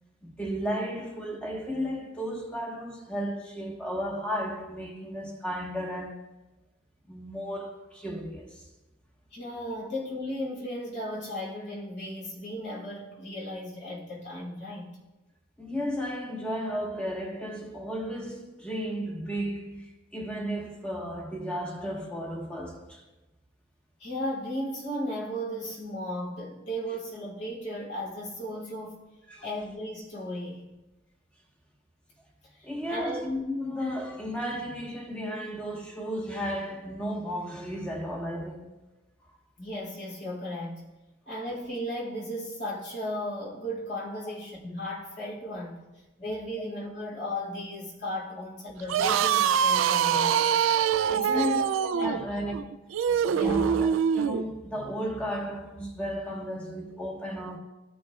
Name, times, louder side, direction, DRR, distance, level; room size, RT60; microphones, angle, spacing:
voice 1, 0.2-6.2 7.1-8.6 15.6-23.0 29.3-29.5 32.6-38.7 39.2-39.3 51.1-52.6 53.3-57.6, equal, 5° left, 1.3 m, -34 dB
voice 2, 9.3-14.9 24.0-29.0 29.4-30.7 32.5-33.2 39.6-40.8 41.3-45.8 46.2-50.6 51.1-51.5 52.0-52.2 53.1-53.6, equal, 60° left, 2.8 m, -35 dB
sound 1, 48.8-54.4, right 8 dB, 90° right, 0.3 m, -24 dB
14.0 x 6.2 x 2.4 m
head